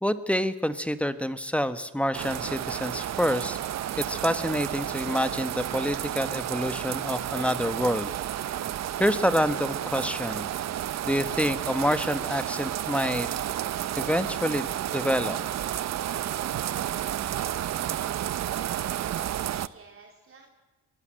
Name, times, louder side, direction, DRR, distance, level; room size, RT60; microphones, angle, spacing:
voice 1, 0.0-3.6 4.0-8.1 9.0-10.5 11.0-13.3 13.9-15.4, equal, 5° left, 12 dB, 1.3 m, -27 dB
sound 1, 2.1-19.7, right 11 dB, 60° right, 0.8 m, -31 dB
voice 2, 18.5-20.5, right 4 dB, 45° right, 1 dB, 3.2 m, -53 dB
23.5 x 16.5 x 7.7 m, 1.2 s
cardioid pair, 90°, 30 cm